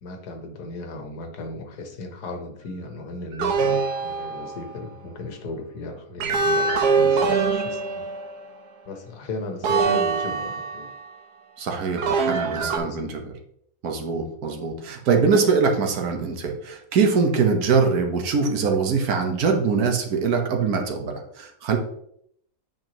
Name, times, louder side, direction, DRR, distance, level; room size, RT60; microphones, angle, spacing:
voice 1, 0.0-8.1 8.9-10.9 12.2-13.1, left 2 dB, 85° left, 5 dB, 1.6 m, -36 dB
sound 1, 3.4-4.8 6.2-8.6 9.6-11.1 12.0-12.8, right 4 dB, 90° right, 1.4 m, -23 dB
voice 2, 11.6-13.2 13.8-21.8, right 5 dB, 70° right, 3 dB, 1.5 m, -23 dB
9.0 x 5.3 x 3.0 m, 0.70 s
omnidirectional pair, 1.6 m